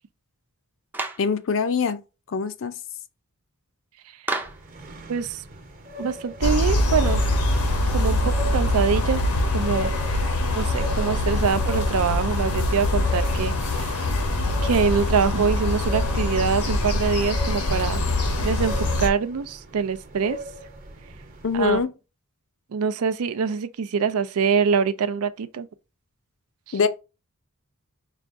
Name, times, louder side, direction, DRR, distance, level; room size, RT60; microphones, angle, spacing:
Clapping, 0.9-1.3 4.3-4.7, right 2 dB, 10° right, 0.5 m, -29 dB
voice 1, 1.2-2.0 2.3-2.7 21.4-21.9 26.7-26.9, left 5 dB, 60° left, 0.5 m, -23 dB
sound 1, 4.4-21.8, equal, 40° right, 0.9 m, -40 dB
voice 2, 5.1-5.4 6.0-7.2 7.9-9.2 9.5-9.9 10.5-14.1 14.6-18.0 18.4-20.4 21.5-21.8 22.7-25.7, right 6 dB, 80° right, 0.4 m, -24 dB
sound 2, 6.4-19.1, left 1 dB, 85° left, 1.0 m, -23 dB
4.9 x 2.4 x 3.5 m
head